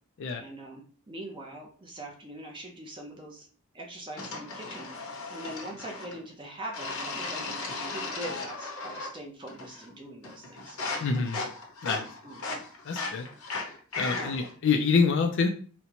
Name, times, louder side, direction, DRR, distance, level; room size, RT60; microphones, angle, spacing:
voice 1, 0.4-3.5 3.7-4.9 5.3-7.5 7.9-10.8 11.8-12.5 14.1-14.3, right 1 dB, 20° right, 0 dB, 0.6 m, -42 dB
sound 1, 4.2-6.2 6.7-9.2 9.5-9.9 10.2-14.5, left 3 dB, 75° left, 0.9 m, -36 dB
voice 2, 11.0-11.4 11.8-12.0 12.9-13.3 14.0-15.5, left 5 dB, 55° left, 4 dB, 0.4 m, -26 dB
4.1 x 2.1 x 2.8 m, 0.42 s
head